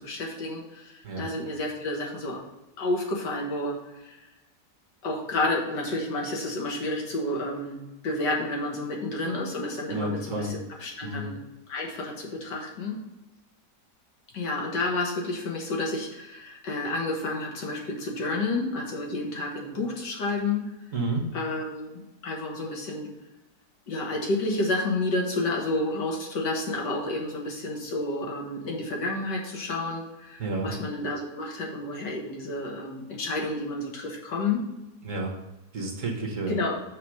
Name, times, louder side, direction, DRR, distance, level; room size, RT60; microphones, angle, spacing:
voice 1, 0.0-2.4 2.8-4.3 5.0-11.4 11.7-13.0 14.3-20.7 21.3-23.1 23.9-34.6 36.5-36.7, left 2 dB, 80° left, -1 dB, 2.1 m, -30 dB
voice 2, 9.9-10.5 11.0-11.3 20.9-21.3 30.4-30.7 35.0-35.3 35.7-36.6, right 2 dB, 50° right, 1 dB, 1.4 m, -30 dB
6.4 x 4.0 x 6.1 m, 0.99 s
omnidirectional pair, 1.9 m